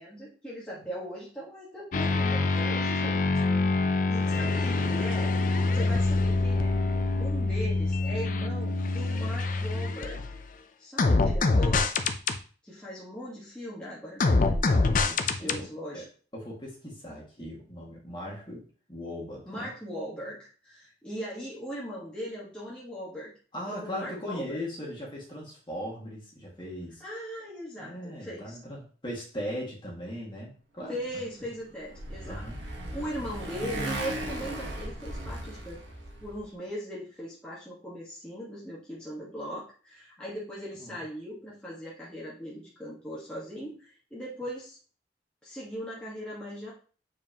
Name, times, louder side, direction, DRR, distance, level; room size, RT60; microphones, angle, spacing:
voice 1, 0.0-3.2 4.0-5.3 5.7-6.7 7.2-10.2 10.8-11.9 12.6-16.0 19.4-23.3 23.7-24.6 27.0-28.6 30.9-32.4 32.9-35.8 36.2-44.8 45.4-46.7, equal, 5° left, -8 dB, 1.5 m, -39 dB
sound 1, 1.9-10.5 11.0-12.4 14.2-15.6, left 3 dB, 45° left, 0.5 m, -25 dB
voice 2, 15.4-16.1 16.3-19.7 23.5-27.0 27.8-31.2 32.2-32.6 40.8-41.0, equal, 25° left, -4 dB, 2.0 m, -39 dB
Motorcycle, 31.4-36.4, right 1 dB, 80° right, 1.4 m, -37 dB
7.3 x 4.6 x 2.9 m, 0.40 s
head